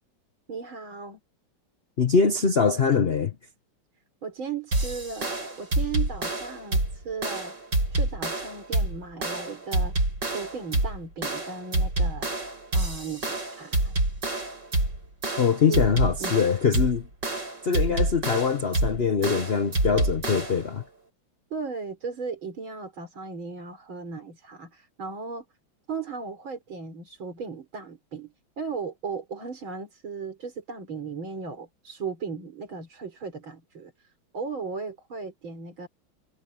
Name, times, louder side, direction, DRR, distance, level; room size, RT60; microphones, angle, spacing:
voice 1, 0.5-1.2 4.2-7.6 7.9-13.9 15.7-15.9 16.2-16.4 17.9-18.0 21.5-25.4 25.9-35.9, right 5 dB, 90° right, 5.1 m, -36 dB
voice 2, 2.0-3.3 15.4-17.1 17.6-20.8, left 6 dB, 40° left, 0.9 m, -23 dB
sound 1, 4.7-20.7, right 2 dB, 65° right, 8.7 m, -27 dB
omnidirectional pair, 2.1 m